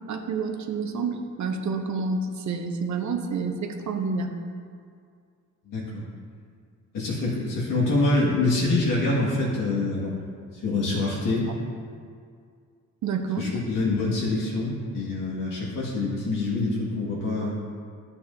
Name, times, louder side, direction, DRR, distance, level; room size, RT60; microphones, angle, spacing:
voice 1, 0.1-4.3 13.0-13.4, right 4 dB, 65° right, 5 dB, 0.9 m, -29 dB
voice 2, 5.7-6.1 6.9-10.2 10.5-11.5 13.4-17.6, left 2 dB, 85° left, -6 dB, 2.0 m, -25 dB
12.0 x 8.4 x 2.7 m, 2.2 s
cardioid pair, 120°, 31 cm